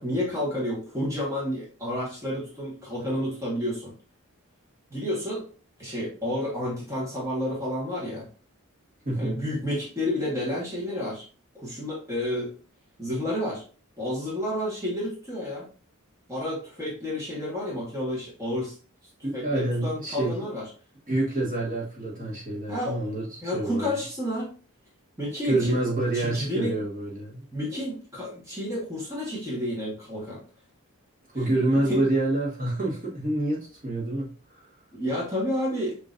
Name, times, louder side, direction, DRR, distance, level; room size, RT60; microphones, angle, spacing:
voice 1, 0.0-3.9 4.9-5.5 5.8-8.3 9.2-11.2 11.5-12.5 13.0-13.6 14.0-15.7 16.3-18.8 19.3-20.7 22.7-23.0 23.4-24.5 25.2-26.8 27.5-30.4 31.3-32.0 34.9-36.0, left 1 dB, 15° right, 1.5 m, -30 dB
voice 2, 9.0-9.4 19.2-20.3 21.1-23.9 25.4-27.4 31.3-34.3, right 2 dB, 35° right, 1.6 m, -27 dB
6.3 x 3.1 x 2.5 m
head